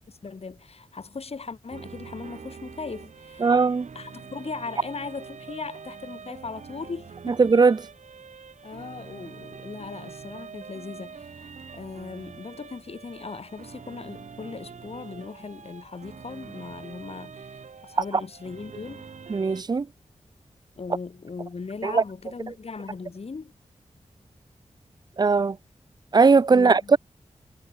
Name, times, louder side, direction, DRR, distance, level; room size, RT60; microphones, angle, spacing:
voice 1, 0.1-3.5 3.9-7.4 8.6-19.0 20.8-23.5 26.5-26.9, left 4 dB, 60° left, 4.6 m, -38 dB
sound 1, 1.7-19.6, right 6 dB, 85° right, 4.9 m, -44 dB
voice 2, 3.4-3.9 7.3-7.8 19.3-19.9 21.8-22.0 25.2-25.6 26.1-27.0, right 4 dB, 35° right, 0.4 m, -19 dB
wide cardioid pair, 90°, 12 cm